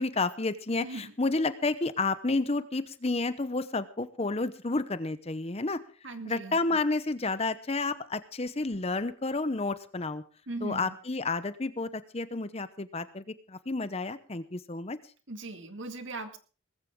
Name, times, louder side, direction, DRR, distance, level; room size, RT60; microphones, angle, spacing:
voice 1, 0.0-5.8 6.2-10.2 10.6-15.0, left 3 dB, 30° left, 13 dB, 0.8 m, -30 dB
voice 2, 0.8-1.1 6.0-6.6 10.5-10.9 15.3-16.4, right 2 dB, 60° right, 7 dB, 2.2 m, -39 dB
20.0 x 15.0 x 3.7 m, 0.37 s
head